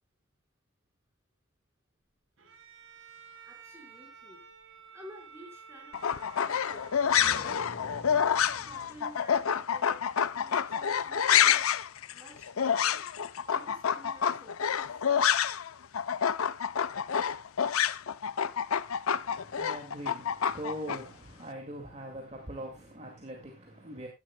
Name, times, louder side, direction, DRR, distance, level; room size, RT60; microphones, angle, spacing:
Bowed string instrument, 2.4-7.6, right 5 dB, 70° right, 1.9 m, -52 dB
voice 1, 3.4-4.4 4.9-8.0 8.6-11.6 12.1-13.0 13.4-14.8, equal, 15° right, 4.9 m, -52 dB
sound 1, 5.9-15.7 15.9-21.0, left 8 dB, 90° left, 0.6 m, -28 dB
sound 2, 6.7-10.3, left 2 dB, 50° left, 2.6 m, -48 dB
voice 2, 19.0-24.1, right 1 dB, 30° right, 2.2 m, -42 dB
16.0 x 11.0 x 2.3 m
head